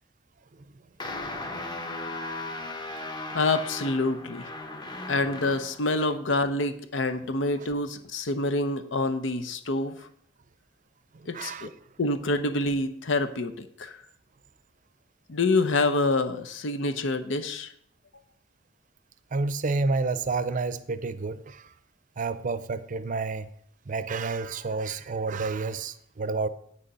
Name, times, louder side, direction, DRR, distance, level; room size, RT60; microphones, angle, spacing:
sound 1, 1.0-5.8, left 2 dB, 25° left, 1.0 m, -36 dB
voice 1, 3.3-4.4 5.1-10.0 11.3-11.7 12.0-14.0 15.3-17.7, left 2 dB, 80° left, 0.8 m, -27 dB
voice 2, 11.1-11.7 19.3-21.7 22.2-23.5 23.9-26.5, right 3 dB, 45° right, 0.5 m, -30 dB
8.8 x 6.5 x 5.4 m
head